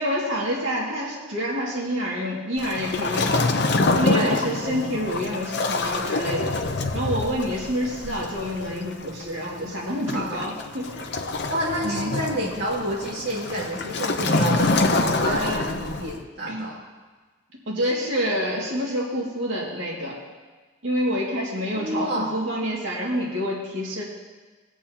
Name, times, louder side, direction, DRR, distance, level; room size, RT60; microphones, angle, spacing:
voice 1, 0.0-3.5 3.9-6.6 6.9-10.9 11.8-12.1 15.2-15.7 16.5-16.6 17.7-20.1 20.8-24.0, equal, 75° right, -4 dB, 2.2 m, -27 dB
Waves surf, 2.6-16.2, left 3 dB, 55° left, 0.7 m, -26 dB
voice 2, 4.1-4.4 10.1-10.4 11.5-16.8 21.8-22.4, right 1 dB, 55° right, -5 dB, 2.2 m, -29 dB
19.5 x 8.4 x 2.9 m, 1.4 s
head